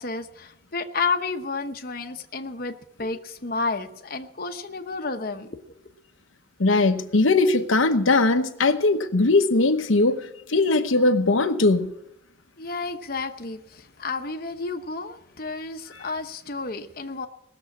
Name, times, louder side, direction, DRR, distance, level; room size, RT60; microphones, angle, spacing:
voice 1, 0.0-5.6 12.6-17.3, left 4 dB, 45° left, 1.0 m, -31 dB
voice 2, 6.6-10.2 10.5-11.9, left 3 dB, 85° left, 1.0 m, -20 dB
19.0 x 7.1 x 8.5 m
head